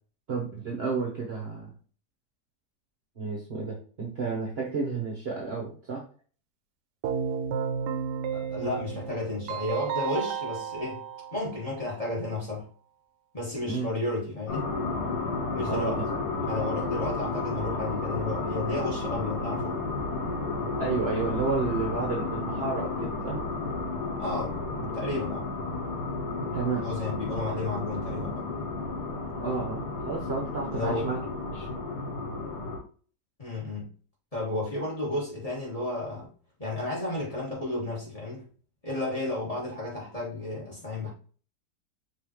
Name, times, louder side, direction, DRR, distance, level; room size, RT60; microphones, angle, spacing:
voice 1, 0.3-1.7 3.2-6.0 13.7-13.8 15.7-16.2 20.8-23.4 26.5-26.8 29.4-29.8 30.1-31.2 31.5-31.7, right 4 dB, 45° right, -2 dB, 1.0 m, -31 dB
Keyboard (musical), 7.0-12.0, right 7 dB, 85° right, 1.2 m, -33 dB
voice 2, 8.3-11.0 11.3-12.7 13.3-14.7 15.5-16.0 16.4-19.8 24.2-25.5 26.8-28.5 30.7-31.1 33.4-33.9 34.3-36.3 36.6-38.5 38.8-41.1, left 2 dB, 20° left, -4 dB, 1.8 m, -32 dB
sound 1, 14.5-32.8, left 3 dB, 75° left, 1.6 m, -32 dB
5.3 x 3.1 x 3.0 m, 0.41 s
omnidirectional pair, 1.8 m